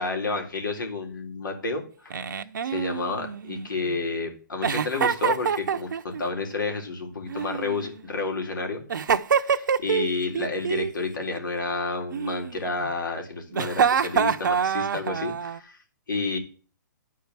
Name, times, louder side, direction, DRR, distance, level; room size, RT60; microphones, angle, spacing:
voice 1, 0.0-2.2 2.6-8.8 9.3-15.8 16.1-16.4, left 3 dB, 80° left, 3 dB, 3.7 m, -30 dB
Giggle, 2.1-3.9 4.6-6.2 7.3-8.2 8.9-10.1 10.4-10.9 12.1-12.9 13.5-15.6, right 7 dB, 75° right, 0.7 m, -26 dB
10.5 x 4.8 x 8.1 m, 0.40 s
hypercardioid pair, 145°, 10 cm